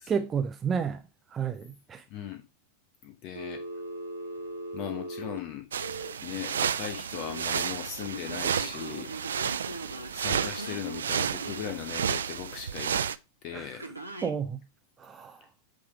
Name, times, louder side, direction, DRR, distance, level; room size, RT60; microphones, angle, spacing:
voice 1, 0.1-1.0 1.3-2.1 13.5-13.7 14.2-14.6 15.0-15.5, right 6 dB, 20° right, 0.6 m, -31 dB
voice 2, 2.1-2.4 3.0-3.6 4.7-5.7 6.2-9.1 9.7-13.1 13.4-13.9, left 10 dB, 40° left, 1.0 m, -38 dB
Telephone, 3.4-6.1 6.8-7.4 8.0-11.7 13.8-14.3, right 1 dB, 85° right, 0.9 m, -40 dB
sound 1, 5.7-13.2, right 8 dB, 65° right, 0.3 m, -32 dB
8.4 x 3.5 x 4.9 m
figure-of-eight pair, 90°, 0 cm